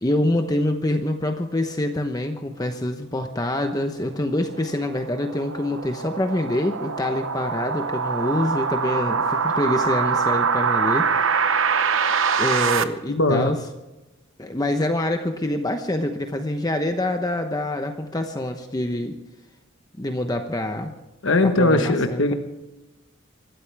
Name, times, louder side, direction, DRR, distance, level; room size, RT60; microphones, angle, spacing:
voice 1, 0.0-11.1 12.4-13.6 14.4-19.2 20.0-20.9 21.4-22.3, left 1 dB, 20° left, 5 dB, 1.0 m, -25 dB
sound 1, 4.2-12.8, right 5 dB, 70° right, 1.0 m, -24 dB
voice 2, 13.1-13.5 21.2-22.3, left 2 dB, 60° left, 6 dB, 1.3 m, -19 dB
25.5 x 13.5 x 3.5 m, 1.0 s
head